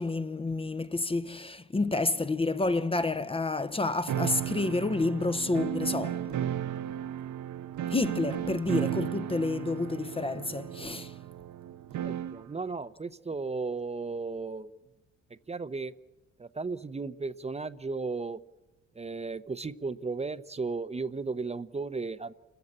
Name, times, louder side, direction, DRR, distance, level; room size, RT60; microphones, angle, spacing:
voice 1, 0.0-6.6 7.9-11.1, left 3 dB, 20° left, 0.7 m, -29 dB
sound 1, 4.1-12.5, right 10 dB, 75° right, 0.9 m, -34 dB
voice 2, 12.0-14.7 15.3-15.9 16.4-18.4 18.9-22.3, right 4 dB, 20° right, 0.7 m, -35 dB
28.0 x 15.0 x 8.7 m
cardioid pair, 90°, 30 cm